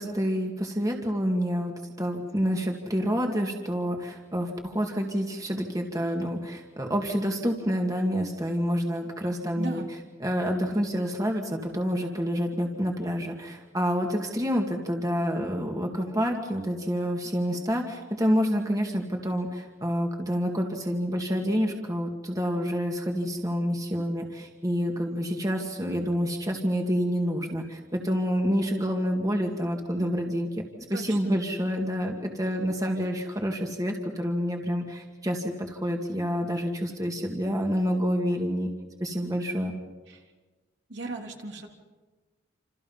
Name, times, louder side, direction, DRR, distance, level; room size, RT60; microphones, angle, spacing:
voice 1, 0.0-9.8 10.2-30.5 30.9-38.7 39.0-39.7, equal, 20° right, 2 dB, 2.1 m, -28 dB
voice 2, 9.5-9.9 30.9-31.3 40.1-40.2 40.9-41.7, right 2 dB, 60° right, 1 dB, 3.4 m, -36 dB
28.5 x 27.5 x 5.6 m, 1.3 s
head